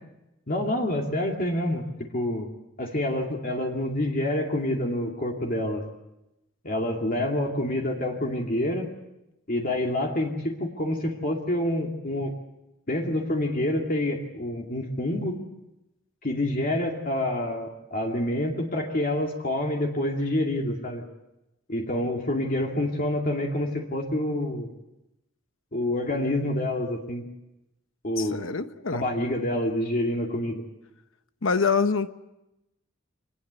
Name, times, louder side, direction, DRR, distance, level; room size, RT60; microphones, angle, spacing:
voice 1, 0.5-1.9 2.1-2.5 2.8-5.8 6.6-8.9 9.5-12.3 12.9-15.4 16.2-21.0 21.7-24.7 25.7-27.2 28.0-28.5 28.9-30.6, left 1 dB, 45° left, 2.4 m, -27 dB
voice 2, 28.2-29.0 31.4-32.1, left 5 dB, 75° left, 1.1 m, -25 dB
25.0 x 20.0 x 8.1 m
head